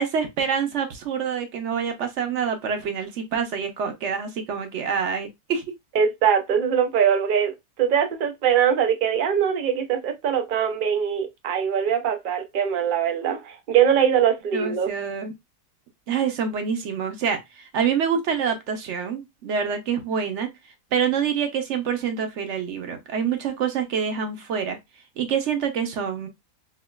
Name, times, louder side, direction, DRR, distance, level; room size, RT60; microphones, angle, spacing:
voice 1, 0.0-5.6 14.5-15.3 16.1-20.5 20.9-24.8 25.2-26.3, right 7 dB, 55° right, 0.9 m, -26 dB
voice 2, 5.9-7.5 7.8-14.9, right 8 dB, 90° right, 0.4 m, -22 dB
4.3 x 2.3 x 2.3 m
omnidirectional pair, 1.7 m